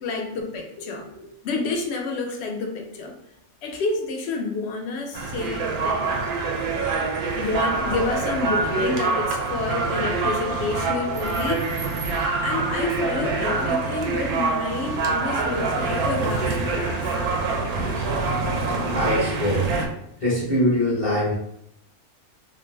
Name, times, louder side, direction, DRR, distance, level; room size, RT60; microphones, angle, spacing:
voice 1, 0.0-1.1 1.4-3.1 3.6-6.1 7.3-11.7 12.4-17.2, left 3 dB, 65° left, 2 dB, 0.7 m, -29 dB
sound 1, 5.1-19.9, right 3 dB, 85° right, 1.1 m, -25 dB
voice 2, 18.7-19.7 20.2-21.3, equal, 30° left, -7 dB, 0.8 m, -24 dB
3.2 x 2.0 x 3.2 m, 0.75 s
omnidirectional pair, 1.5 m